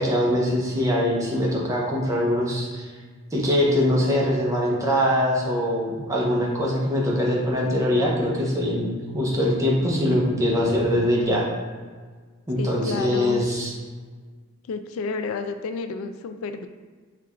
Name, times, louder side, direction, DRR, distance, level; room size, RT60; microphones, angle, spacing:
voice 1, 0.0-2.9 3.3-11.4 12.5-13.7, equal, 15° right, -3 dB, 0.7 m, -23 dB
voice 2, 12.6-13.4 14.7-16.7, left 4 dB, 85° left, 8 dB, 0.3 m, -30 dB
4.5 x 2.4 x 3.4 m, 1.5 s
head